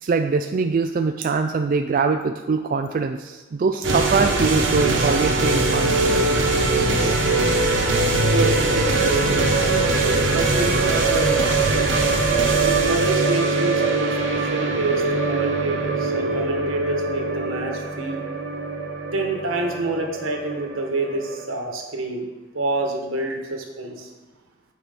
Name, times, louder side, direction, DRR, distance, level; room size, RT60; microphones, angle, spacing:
voice 1, 0.0-6.4 6.9-7.1, right 4 dB, 45° right, 6 dB, 0.3 m, -23 dB
sound 1, 3.8-21.4, right 3 dB, 65° right, 1.1 m, -22 dB
voice 2, 8.1-11.5 12.6-18.2 19.1-22.3 22.5-24.1, right 2 dB, 85° right, 2 dB, 1.3 m, -27 dB
8.7 x 4.8 x 5.0 m, 1.2 s
head